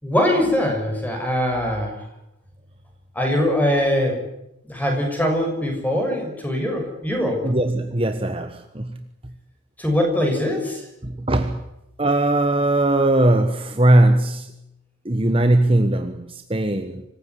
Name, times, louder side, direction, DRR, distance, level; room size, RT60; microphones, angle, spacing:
voice 1, 0.0-2.0 3.1-4.2 4.6-7.4 9.8-10.8, left 1 dB, 10° left, 6.7 m, -22 dB
voice 2, 7.4-9.0 11.0-11.6 12.0-14.5 15.0-17.0, right 1 dB, 25° right, 1.2 m, -19 dB
26.0 x 16.0 x 9.8 m
head